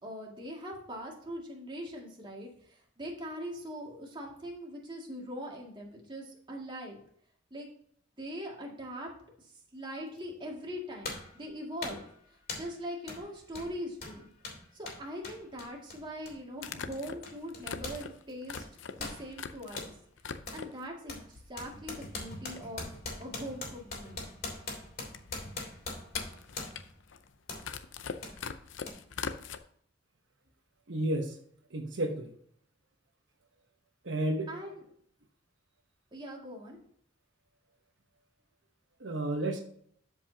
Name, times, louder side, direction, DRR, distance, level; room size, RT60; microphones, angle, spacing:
voice 1, 0.0-7.0 7.5-7.7 8.2-9.1 9.4-12.0 12.3-14.3 14.7-18.7 18.9-19.9 20.5-22.9 23.2-24.2 34.5-34.8 36.1-36.8, equal, 25° right, -1 dB, 2.2 m, -42 dB
sound 1, 10.2-10.3 11.0-11.4 11.8-12.1 12.5-12.8 13.1-13.2 13.5-18.0 18.3-19.9 20.5-20.7 21.1-26.9 27.5-27.7 28.2-28.4 28.9-29.0, left 3 dB, 50° left, 3.0 m, -41 dB
sound 2, 13.8-13.9 15.6-15.7 16.6-19.9 20.2-20.9 21.4-22.0 22.3-22.4 22.6-29.6, left 6 dB, 85° left, 0.6 m, -42 dB
voice 2, 30.9-31.4 31.7-32.3 34.0-34.5 39.0-39.6, right 1 dB, 70° right, 3 dB, 1.0 m, -31 dB
12.5 x 5.4 x 2.8 m, 0.64 s
head